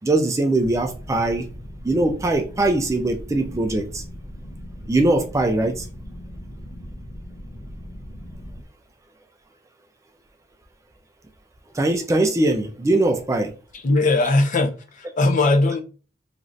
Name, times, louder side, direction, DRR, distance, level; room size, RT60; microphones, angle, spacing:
voice 1, 0.0-1.4 1.8-4.0 4.9-5.9 11.7-13.5, right 2 dB, 15° right, 0.3 m, -21 dB
sound 1, 0.6-8.6, equal, 75° left, 0.7 m, -38 dB
voice 2, 13.8-15.8, left 2 dB, 40° left, 0.5 m, -19 dB
3.1 x 2.4 x 2.5 m
head